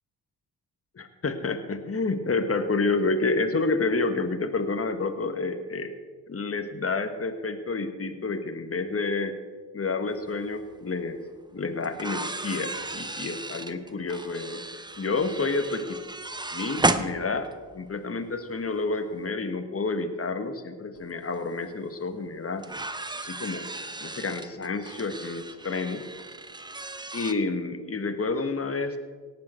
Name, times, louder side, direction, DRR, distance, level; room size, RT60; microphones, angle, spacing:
voice 1, 1.0-5.9 6.3-9.3 9.7-11.2 11.5-14.6 15.0-16.0 16.5-17.5 17.7-22.6 23.2-23.6 24.0-26.0 27.1-29.0, left 3 dB, 30° left, 8 dB, 1.4 m, -29 dB
sound 1, 10.6-10.7 11.8-17.8 19.1-19.2 21.0-21.1 21.4-21.5 22.6-27.3, right 2 dB, 10° right, 0.8 m, -33 dB
18.0 x 7.7 x 4.4 m, 1.5 s
hypercardioid pair, 40°, 48 cm